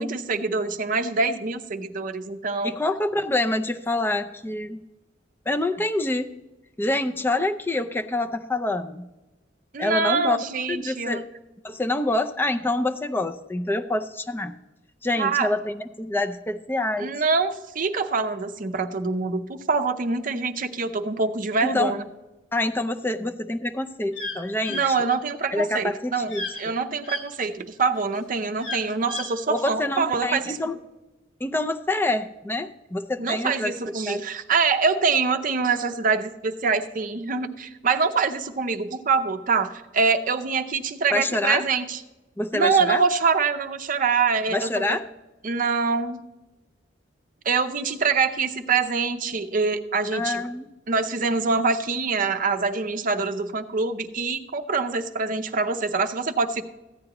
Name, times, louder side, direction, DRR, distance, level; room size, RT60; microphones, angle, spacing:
voice 1, 0.0-2.8 9.7-11.2 15.2-15.5 17.0-22.0 24.7-26.3 26.6-30.6 33.2-42.0 42.5-45.0 45.4-46.2 47.5-50.4 50.9-56.6, right 4 dB, 45° right, 8 dB, 0.6 m, -25 dB
voice 2, 2.6-4.8 5.5-6.3 6.8-9.1 9.8-10.4 10.7-11.3 11.6-14.5 15.0-17.1 21.6-21.9 22.5-25.0 25.5-26.7 29.5-30.8 31.4-33.7 34.1-34.2 41.1-41.6 42.4-43.0 44.5-45.0 50.1-50.7, left 2 dB, 10° left, 6 dB, 0.5 m, -26 dB
sound 1, 24.1-24.4 24.6-24.8 26.3-26.6 27.0-27.2 28.6-29.3, left 3 dB, 75° left, 2.2 m, -32 dB
14.5 x 9.2 x 3.0 m, 1.1 s
head